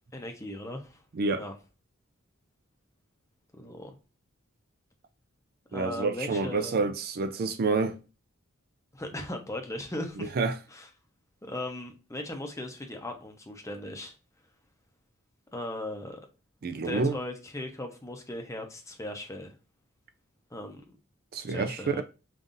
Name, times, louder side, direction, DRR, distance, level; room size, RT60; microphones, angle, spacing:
voice 1, 0.1-1.0 1.4-1.5 3.5-4.0 5.7-6.9 8.9-10.3 10.7-10.9 11.4-14.1 15.5-16.2 16.8-19.5 20.5-21.0 21.5-22.0, left 1 dB, 15° left, 0.7 m, -38 dB
voice 2, 5.7-8.0 10.2-10.6 16.6-17.2 21.3-22.0, right 4 dB, 45° right, 0.4 m, -28 dB
5.3 x 2.6 x 2.5 m
head